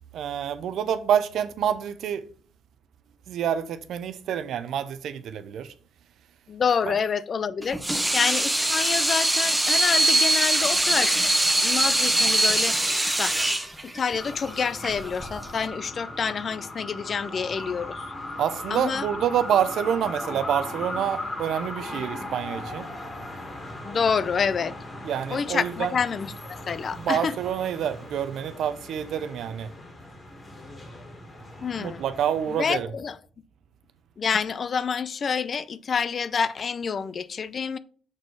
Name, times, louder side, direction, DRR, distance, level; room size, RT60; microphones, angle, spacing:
voice 1, 0.1-2.2 3.3-5.7 6.9-7.0 18.4-22.9 25.0-25.9 26.9-29.7 31.7-32.9, right 9 dB, 75° right, 0.6 m, -27 dB
voice 2, 6.5-7.8 8.1-11.2 11.6-12.8 13.2-13.4 13.9-18.1 18.7-19.1 23.8-24.7 25.3-27.4 31.6-32.0 32.5-33.2 34.2-37.8, left 6 dB, 45° left, 0.4 m, -27 dB
Water tap faucet / Sink (filling or washing), 7.6-15.7, right 1 dB, 10° right, 0.8 m, -23 dB
sound 1, 14.2-32.8, left 1 dB, 30° left, 2.1 m, -38 dB
6.3 x 4.3 x 4.7 m
cardioid pair, 90°, 0 cm